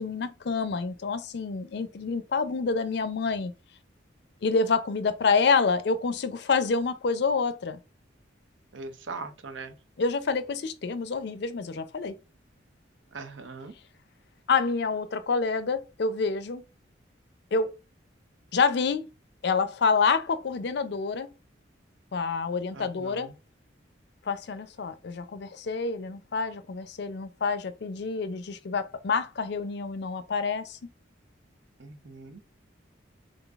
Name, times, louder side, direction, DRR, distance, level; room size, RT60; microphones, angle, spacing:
voice 1, 0.0-3.5 4.4-7.8 10.0-12.2 14.5-16.6 17.5-17.7 18.5-19.1 19.4-21.3 22.1-23.3 24.3-30.8, left 4 dB, 60° left, 0.4 m, -27 dB
voice 2, 8.7-9.8 13.1-13.7 22.7-23.4 31.8-32.4, right 4 dB, 75° right, 0.7 m, -41 dB
3.8 x 3.7 x 2.4 m
head